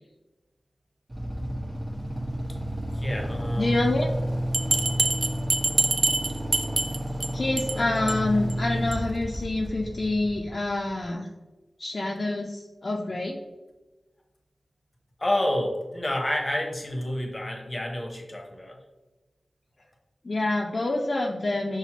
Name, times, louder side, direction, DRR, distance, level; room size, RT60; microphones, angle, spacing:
Motorcycle / Idling, 1.1-11.0, equal, 35° right, 1.0 m, -31 dB
voice 1, 2.9-3.9 7.7-8.1 15.2-18.8, left 1 dB, 30° left, 1 dB, 0.8 m, -29 dB
voice 2, 3.6-4.1 7.3-11.3 11.8-13.4 20.2-21.8, left 2 dB, 50° left, 0 dB, 0.4 m, -27 dB
Bell, 4.5-7.3 7.6-7.8 8.1-8.2 8.5-8.6 8.9-9.0, right 3 dB, 65° right, 0.4 m, -25 dB
5.7 x 2.1 x 2.9 m, 1.2 s
wide cardioid pair, 75°, 0 cm